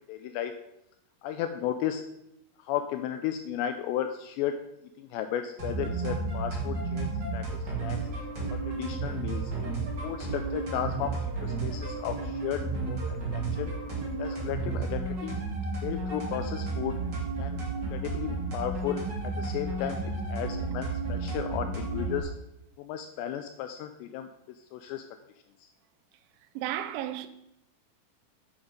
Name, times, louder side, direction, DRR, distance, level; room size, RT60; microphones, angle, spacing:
voice 1, 0.1-0.5 1.2-2.1 2.6-4.5 5.0-7.4 7.8-8.0 8.5-9.5 10.0-12.6 12.9-13.7 14.2-15.4 15.8-16.9 17.4-17.6 17.9-19.0 19.4-20.0 20.3-22.3 22.8-24.3 24.7-25.0, left 10 dB, 85° left, 2.6 m, -34 dB
sound 1, 5.6-22.2, right 3 dB, 35° right, 1.9 m, -32 dB
voice 2, 26.6-27.3, right 12 dB, 90° right, 3.1 m, -33 dB
8.1 x 7.1 x 5.0 m
omnidirectional pair, 5.3 m